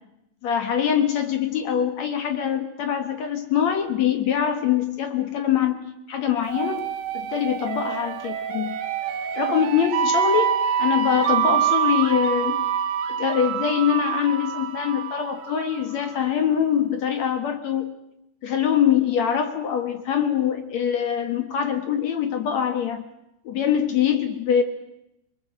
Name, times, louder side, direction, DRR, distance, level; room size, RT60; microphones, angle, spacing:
voice 1, 0.4-6.9 7.1-8.8 9.3-12.6 13.1-17.9 18.4-23.0 23.5-24.6, left 9 dB, 60° left, 8 dB, 1.9 m, -23 dB
sound 1, 6.5-16.2, right 9 dB, 85° right, 3.7 m, -26 dB
24.5 x 21.0 x 7.8 m, 0.83 s
omnidirectional pair, 4.9 m